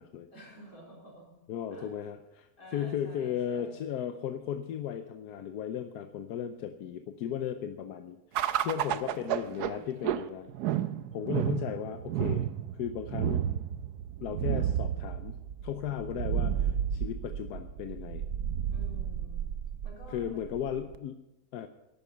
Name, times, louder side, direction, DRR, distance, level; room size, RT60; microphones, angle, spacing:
voice 1, 0.3-1.4 1.7-1.9 2.6-3.9 8.9-9.9 18.7-19.5 19.8-20.5, equal, 65° left, -3 dB, 4.6 m, -51 dB
voice 2, 1.5-10.5 11.1-12.5 12.7-13.4 14.2-15.4 15.6-18.3 20.1-21.2 21.5-21.7, left 9 dB, 85° left, 8 dB, 1.2 m, -36 dB
sound 1, 8.3-21.0, right 10 dB, 90° right, 1.2 m, -32 dB
13.5 x 11.5 x 5.7 m, 0.94 s
omnidirectional pair, 1.6 m